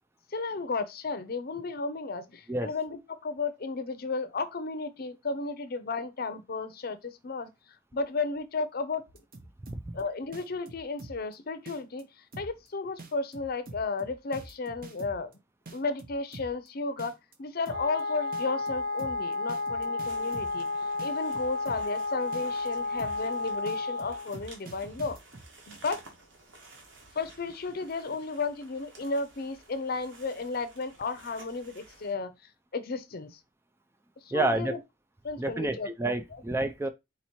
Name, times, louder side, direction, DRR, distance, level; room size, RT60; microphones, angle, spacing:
voice 1, 0.3-7.5 7.9-9.1 9.9-12.1 12.4-15.3 15.7-20.7 21.0-25.2 25.7-26.0 27.1-32.3 32.7-33.4 34.2-34.8 35.2-35.9 36.3-36.4, left 4 dB, 50° left, 0.6 m, -33 dB
sound 1, 9.1-10.0 10.3-11.3 11.7-12.0 12.3-12.7 13.0-15.3 15.7-16.7 17.0-17.3 17.7-18.0 18.3-20.7 21.0-22.0 22.3-22.7 23.0-23.3 23.7-25.5, right 2 dB, 45° right, 0.8 m, -45 dB
Wind instrument woodwind instrument, 17.7-24.3, left 3 dB, 90° right, 1.0 m, -32 dB
sound 2, 20.0-32.1, right 2 dB, 70° right, 1.5 m, -53 dB
voice 2, 34.3-34.7 35.4-36.9, right 2 dB, 15° right, 0.3 m, -29 dB
4.1 x 2.9 x 4.3 m
head